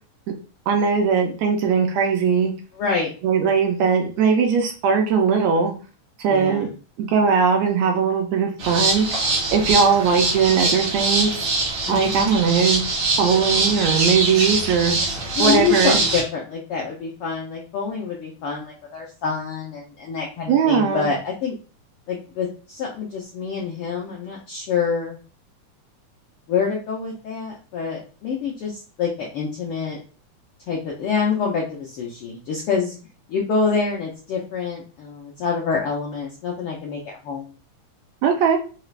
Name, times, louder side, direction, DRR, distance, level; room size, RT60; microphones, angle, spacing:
voice 1, 0.7-2.5 3.2-5.7 6.2-6.7 7.0-9.1 9.5-11.5 11.9-12.8 13.2-15.0 15.4-16.0 20.5-21.1 38.2-38.6, right 6 dB, 75° right, 3 dB, 1.8 m, -19 dB
voice 2, 2.7-3.1 6.3-6.7 11.9-12.3 15.4-21.6 22.1-25.2 26.5-30.0 30.7-33.0 33.3-37.5, left 5 dB, 80° left, -2 dB, 1.3 m, -26 dB
sound 1, 8.6-16.2, right 3 dB, 55° right, 1.5 m, -23 dB
4.8 x 2.4 x 3.2 m, 0.36 s
omnidirectional pair, 3.4 m